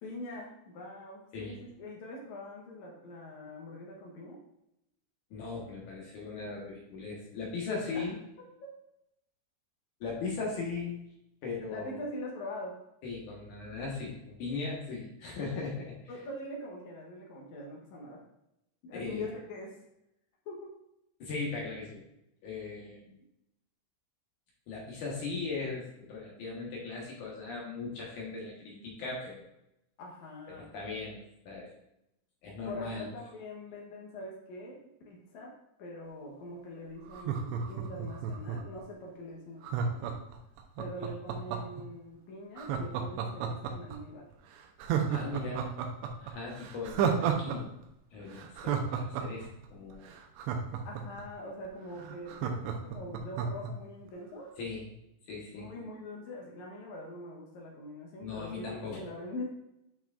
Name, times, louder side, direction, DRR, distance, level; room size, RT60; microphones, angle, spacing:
voice 1, 0.0-4.4 7.9-8.1 8.4-8.5 11.7-12.8 16.1-18.2 18.8-19.7 20.4-20.7 30.0-30.7 32.7-34.8 35.1-35.5 35.8-40.2 40.8-44.2 50.8-54.5 55.5-59.4, left 1 dB, 90° left, -2 dB, 1.6 m, -43 dB
voice 2, 5.3-8.2 10.0-11.0 11.4-12.0 13.0-15.9 18.9-19.3 21.2-22.0 22.4-23.1 24.7-29.5 30.5-31.2 31.5-31.7 32.4-33.1 45.1-45.7 46.2-47.7 48.1-50.1 54.6-54.9 55.3-55.7 58.2-59.1, left 4 dB, 65° left, -3 dB, 2.1 m, -38 dB
Laughter, 37.1-38.8 39.6-41.8 42.6-44.0 44.3-44.4 44.8-47.6 47.8-47.9 48.3-51.2 51.7-51.8 52.0-53.7 54.1-54.2, right 7 dB, 85° right, 2.9 m, -32 dB
8.8 x 5.9 x 2.5 m, 0.84 s
omnidirectional pair, 5.0 m